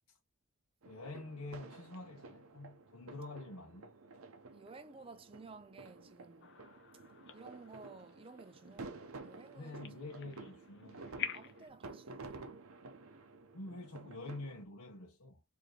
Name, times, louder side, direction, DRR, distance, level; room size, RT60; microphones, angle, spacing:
sound 1, 0.8-14.6, right 3 dB, 70° right, 0.7 m, -52 dB
voice 1, 0.9-3.9 9.5-11.1 13.5-15.4, left 2 dB, 85° left, 0.9 m, -47 dB
voice 2, 4.5-6.6 7.3-10.4 11.3-12.5, right 3 dB, 25° right, 0.4 m, -55 dB
sound 2, 6.4-11.7, left 8 dB, 50° left, 0.6 m, -48 dB
4.6 x 2.7 x 2.9 m
head